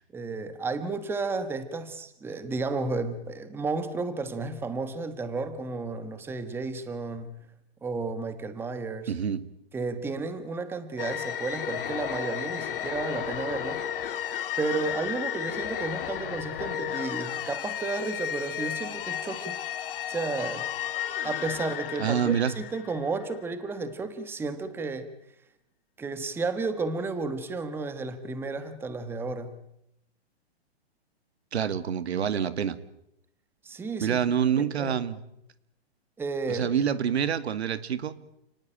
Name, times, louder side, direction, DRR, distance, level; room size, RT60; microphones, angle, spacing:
voice 1, 0.1-7.5 7.8-9.1 9.7-13.8 14.6-19.6 20.1-20.7 21.2-25.1 26.0-29.6 33.6-34.2 34.6-35.0 36.2-36.7, right 3 dB, 5° right, 11 dB, 1.4 m, -32 dB
voice 2, 9.1-9.5 22.0-22.5 31.5-32.8 34.0-35.2 36.5-38.1, right 8 dB, 75° right, 14 dB, 2.1 m, -27 dB
sound 1, 11.0-23.5, left 10 dB, 55° left, 3.2 m, -33 dB
29.5 x 19.5 x 9.0 m, 0.82 s
hypercardioid pair, 155°, 32 cm